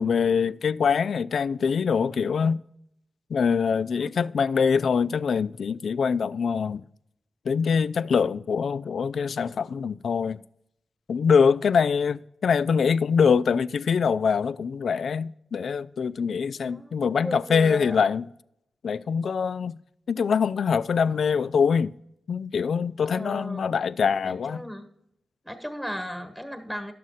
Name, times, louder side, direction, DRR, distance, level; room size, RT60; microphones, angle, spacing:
voice 1, 0.0-2.6 3.3-6.8 7.5-10.4 11.1-18.3 18.8-19.8 20.1-21.9 22.3-24.6, left 6 dB, 65° left, 0.3 m, -24 dB
voice 2, 16.6-18.0 23.0-23.7 24.2-24.9 25.4-26.9, equal, ahead, 1.2 m, -36 dB
11.0 x 7.4 x 4.1 m
wide cardioid pair, 120°, 0 cm